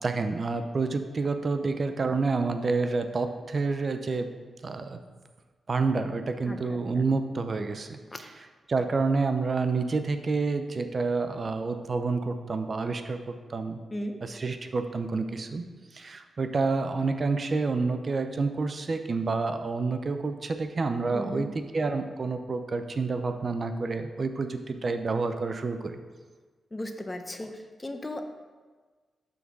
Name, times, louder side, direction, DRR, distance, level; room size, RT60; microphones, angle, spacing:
voice 1, 0.0-4.3 4.6-5.0 5.7-8.0 8.7-13.8 14.2-15.6 15.9-21.5 21.7-26.0, right 4 dB, 45° right, 8 dB, 0.5 m, -28 dB
voice 2, 13.9-14.2 21.1-21.5 26.7-28.2, left 1 dB, 25° left, 6 dB, 0.7 m, -36 dB
5.9 x 4.0 x 5.9 m, 1.4 s
cardioid pair, 75°, 0 cm